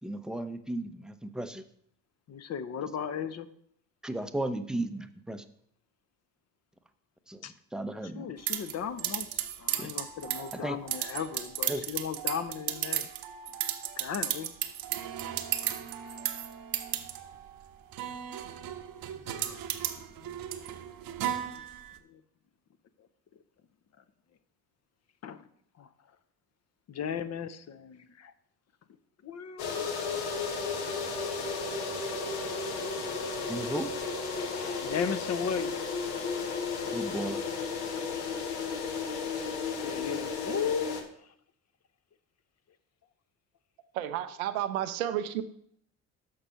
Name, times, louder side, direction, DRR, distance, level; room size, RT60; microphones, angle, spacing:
voice 1, 0.0-1.6 4.0-5.4 7.3-8.3 9.8-9.9 10.5-10.8 11.7-11.9 33.5-33.9 36.9-37.4, right 1 dB, ahead, 9 dB, 0.7 m, -35 dB
voice 2, 2.3-3.5 7.4-7.5 8.1-13.1 14.0-14.5 19.2-19.6 20.2-20.7 21.5-21.6 22.1-22.2 25.2-25.4 25.8-25.9 26.9-28.3 29.2-30.3 30.9-31.2 34.4-36.0 38.9-41.3, left 7 dB, 40° left, 12 dB, 0.7 m, -37 dB
sound 1, 8.5-22.0, right 11 dB, 55° right, 1.0 m, -35 dB
sound 2, 29.6-41.0, left 4 dB, 70° left, 1.3 m, -33 dB
voice 3, 43.9-45.4, right 11 dB, 80° right, 10 dB, 0.7 m, -31 dB
6.7 x 6.0 x 5.6 m, 0.67 s
hypercardioid pair, 55°, 42 cm